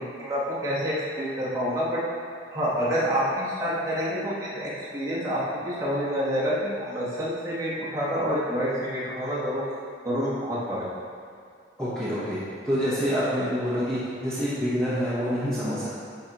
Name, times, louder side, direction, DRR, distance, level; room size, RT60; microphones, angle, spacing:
voice 1, 0.0-2.0 2.5-9.6 10.0-10.9, equal, 20° right, -9 dB, 1.3 m, -28 dB
voice 2, 11.8-15.9, equal, 5° left, -12 dB, 0.9 m, -27 dB
9.5 x 3.9 x 2.9 m, 2.2 s
head